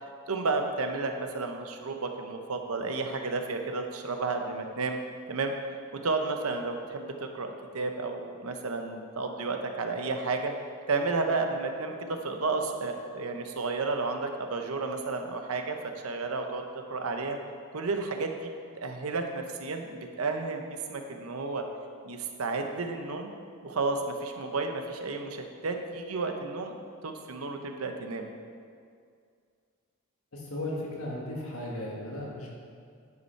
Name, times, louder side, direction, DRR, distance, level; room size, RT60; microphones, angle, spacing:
voice 1, 0.0-5.0 5.3-5.5 6.0-10.5 10.9-15.8 16.0-16.6 16.9-17.4 17.7-21.7 22.0-23.3 23.6-26.7 27.0-28.3, right 3 dB, 85° right, 5 dB, 0.8 m, -32 dB
voice 2, 30.3-32.5, left 1 dB, 85° left, -3 dB, 1.7 m, -36 dB
9.5 x 5.5 x 4.5 m, 2.2 s
head